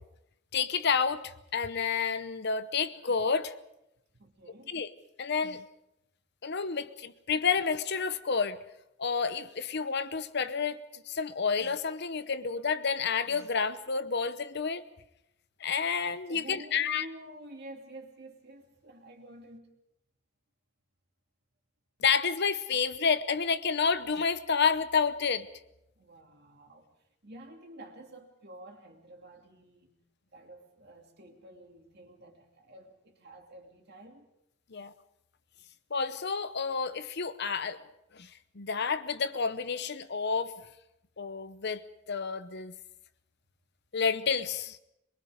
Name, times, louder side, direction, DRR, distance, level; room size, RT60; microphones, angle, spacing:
voice 1, 0.5-3.5 4.7-4.9 5.2-5.6 6.4-8.6 9.0-10.8 11.1-14.8 15.6-17.0 22.0-25.5 34.7-34.9 35.9-37.8 38.1-38.3 38.5-40.5 41.2-41.8 42.1-42.7 43.9-44.8, left 5 dB, 50° left, 0.8 m, -30 dB
voice 2, 4.1-4.8 16.3-19.7 26.0-26.9 27.2-29.9 30.3-34.3, right 1 dB, 50° right, 2.7 m, -50 dB
23.0 x 22.5 x 5.1 m
head